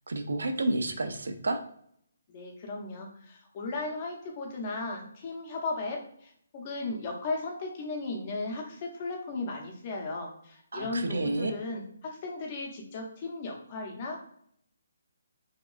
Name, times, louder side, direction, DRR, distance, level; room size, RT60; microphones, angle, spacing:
voice 1, 0.1-1.6 10.7-11.5, right 2 dB, 80° right, 5 dB, 0.4 m, -30 dB
voice 2, 2.3-14.2, left 3 dB, 25° left, 0 dB, 0.6 m, -36 dB
2.8 x 2.3 x 2.3 m, 0.67 s
hypercardioid pair, 170°, 0 cm